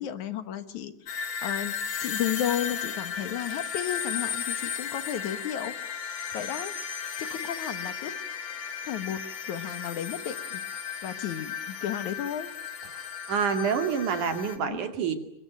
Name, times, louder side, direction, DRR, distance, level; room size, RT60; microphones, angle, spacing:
voice 1, 0.0-5.7 6.3-6.7 7.2-8.2 8.8-9.2 9.5-10.6 11.0-12.5 14.5-14.9, left 10 dB, 70° left, 10 dB, 2.7 m, -33 dB
sound 1, 1.1-14.6, left 7 dB, 55° left, 3.0 m, -35 dB
voice 2, 13.3-15.1, right 6 dB, 75° right, 6 dB, 3.8 m, -27 dB
28.0 x 22.5 x 9.2 m, 0.76 s
omnidirectional pair, 3.5 m